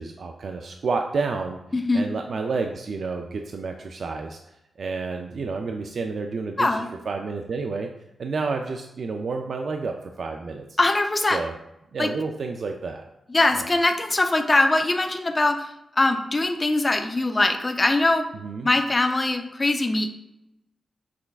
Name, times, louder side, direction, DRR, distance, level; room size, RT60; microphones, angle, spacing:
voice 1, 0.0-1.6 1.9-4.4 4.8-6.8 7.1-7.9 8.2-10.6 11.3-11.5 11.9-13.0 13.6-13.7 18.4-18.7, right 4 dB, 60° right, 4 dB, 0.3 m, -30 dB
voice 2, 1.7-2.0 6.6-6.9 10.8-11.4 12.0-12.1 13.3-18.2 18.6-20.1, left 2 dB, 25° left, 6 dB, 0.4 m, -22 dB
6.0 x 3.3 x 2.3 m, 0.89 s
wide cardioid pair, 135°, 0 cm